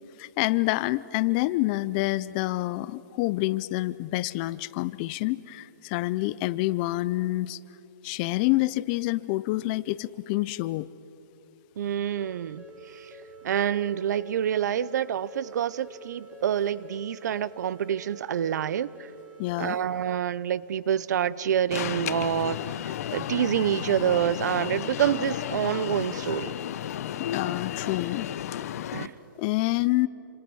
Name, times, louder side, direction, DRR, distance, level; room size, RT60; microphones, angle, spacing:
voice 1, 0.2-7.6 8.0-10.9 19.4-19.8 27.3-28.3 29.4-30.1, left 19 dB, 25° left, 0.5 m, -27 dB
voice 2, 11.8-12.6 12.9-13.1 13.4-19.1 19.6-22.8 23.1-26.5 28.9-29.1, right 9 dB, 60° right, 0.7 m, -27 dB
sound 1, 12.2-20.1, right 2 dB, 10° right, 2.2 m, -48 dB
Alarm, 21.7-29.1, left 11 dB, 50° left, 0.8 m, -33 dB
29.0 x 26.5 x 6.3 m
hypercardioid pair, 155°, 11 cm